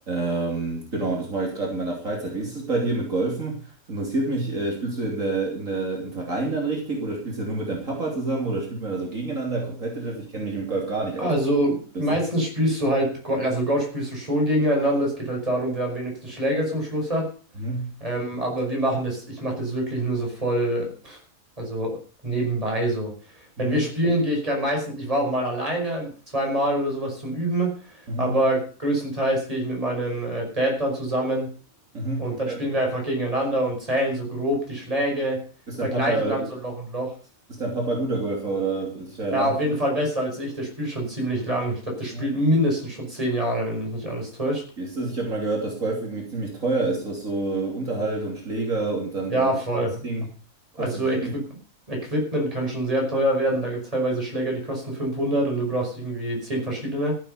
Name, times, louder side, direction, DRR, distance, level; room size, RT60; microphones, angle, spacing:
voice 1, 0.1-11.3 12.0-12.2 17.6-17.9 23.6-23.8 28.1-28.4 31.9-32.6 35.7-36.5 37.5-39.5 42.1-42.3 44.8-50.3 50.8-51.4, right 2 dB, 60° right, -1 dB, 3.6 m, -28 dB
voice 2, 11.2-17.3 18.0-21.2 21.6-22.0 22.2-23.1 23.6-27.8 28.2-31.5 32.2-35.4 35.8-37.1 39.3-44.6 49.3-49.9 50.8-51.4 51.9-57.1, right 1 dB, 25° right, 0 dB, 5.8 m, -25 dB
14.5 x 9.1 x 6.8 m, 0.41 s
omnidirectional pair, 1.6 m